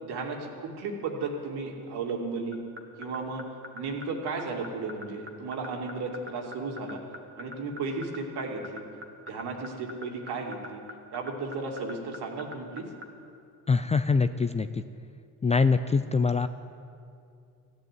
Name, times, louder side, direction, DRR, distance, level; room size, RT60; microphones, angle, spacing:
voice 1, 0.0-2.6 3.0-3.4 3.7-7.0 7.4-8.8 9.3-10.8 11.1-12.9, right 3 dB, 65° right, 1 dB, 2.6 m, -34 dB
sound 1, 2.5-13.0, equal, 25° right, 1.9 m, -41 dB
voice 2, 13.7-14.8 15.4-16.5, left 4 dB, 15° left, 11 dB, 0.4 m, -24 dB
15.0 x 7.9 x 9.4 m, 2.5 s
hypercardioid pair, 65°, 43 cm